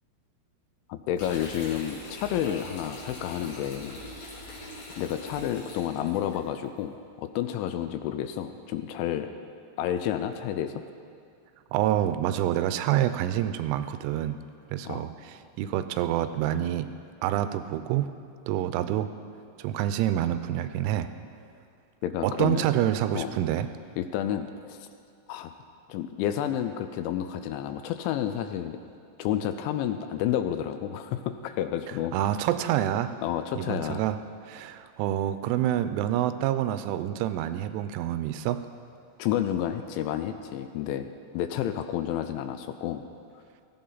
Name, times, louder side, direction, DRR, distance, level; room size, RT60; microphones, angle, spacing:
voice 1, 0.9-4.0 5.0-9.3 9.8-10.7 14.9-15.1 22.0-22.6 23.2-23.4 24.0-24.9 25.3-25.5 25.9-28.8 29.2-32.3 33.2-34.0 39.2-41.1 41.3-43.0, left 10 dB, 85° left, 9 dB, 2.8 m, -30 dB
sound 1, 1.2-6.4, left 1 dB, 60° left, 4.9 m, -42 dB
voice 2, 11.7-14.5 14.7-17.0 17.2-18.2 18.5-19.1 19.6-21.1 22.2-23.7 32.1-33.1 33.6-34.2 34.5-38.6, right 12 dB, 85° right, 11 dB, 3.0 m, -27 dB
17.0 x 14.5 x 4.0 m, 2.3 s
omnidirectional pair, 5.6 m